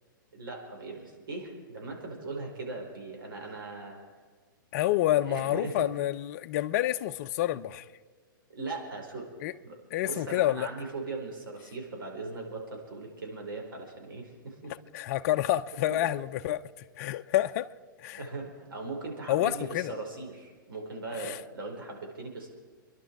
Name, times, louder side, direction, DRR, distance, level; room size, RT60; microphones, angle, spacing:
voice 1, 0.3-4.0 5.3-5.9 8.5-9.3 9.6-9.8 10.0-14.7 15.9-16.1 18.2-22.5, right 3 dB, 90° right, 5.1 m, -39 dB
voice 2, 4.7-7.9 9.4-9.5 9.9-10.7 14.7-17.7 18.0-18.3 19.3-19.9 21.2-21.4, left 14 dB, 45° left, 0.6 m, -28 dB
24.5 x 11.5 x 4.8 m
hypercardioid pair, 145°, 11 cm